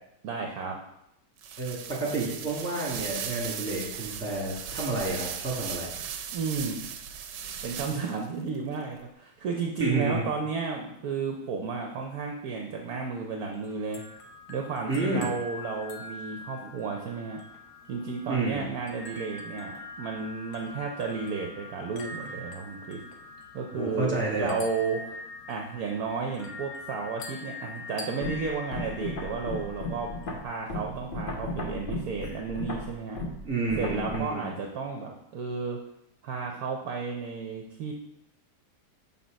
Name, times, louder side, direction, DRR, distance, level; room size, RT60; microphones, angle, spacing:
voice 1, 0.2-0.8 6.3-6.8 7.6-14.0 14.5-17.4 17.9-23.0 23.5-25.2 25.5-30.1 30.4-33.2 33.8-35.8 36.2-37.9, right 4 dB, 65° right, 1 dB, 1.1 m, -33 dB
sound 1, 1.4-8.3, right 8 dB, 85° right, 1.3 m, -37 dB
voice 2, 1.6-5.9 9.8-10.3 14.9-15.3 18.3-18.6 23.7-24.5 33.4-34.5, right 3 dB, 5° right, -4 dB, 1.8 m, -30 dB
sound 2, 13.5-30.4, left 3 dB, 70° left, 1.3 m, -44 dB
sound 3, 28.2-34.2, left 1 dB, 50° left, 0.7 m, -35 dB
5.8 x 3.8 x 5.2 m, 0.81 s
omnidirectional pair, 1.9 m